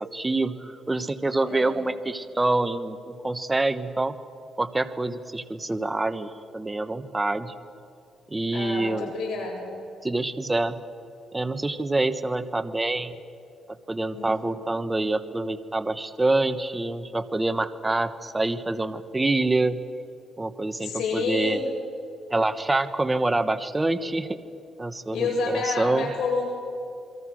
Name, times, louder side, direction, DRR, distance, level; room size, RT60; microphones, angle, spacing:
voice 1, 0.0-4.1 4.6-7.5 8.3-9.1 10.0-10.8 11.3-13.2 13.7-19.8 20.4-21.6 22.3-24.4 24.8-26.1, right 2 dB, 15° right, 11 dB, 1.2 m, -26 dB
voice 2, 1.4-1.8 8.5-9.7 14.1-14.6 20.8-21.6 25.1-26.5, left 4 dB, 75° left, 0 dB, 7.6 m, -29 dB
28.0 x 23.5 x 6.4 m, 2.6 s
cardioid pair, 90°, 0 cm